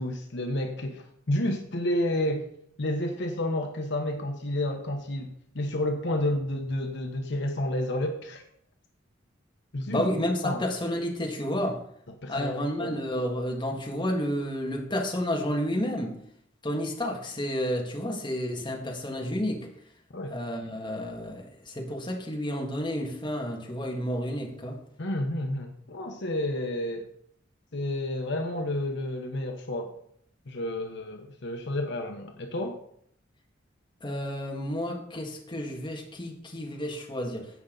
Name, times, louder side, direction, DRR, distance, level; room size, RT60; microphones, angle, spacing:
voice 1, 0.0-2.5 2.8-8.4 9.7-10.1 10.4-10.6 12.2-13.0 20.1-20.4 25.0-27.1 27.7-30.0 30.5-32.8, left 1 dB, 65° left, 3 dB, 1.1 m, -30 dB
voice 2, 9.9-11.8 12.3-16.2 16.6-19.7 20.3-24.8 34.0-37.5, equal, 25° left, 0 dB, 1.8 m, -31 dB
15.5 x 5.6 x 4.0 m, 0.67 s
head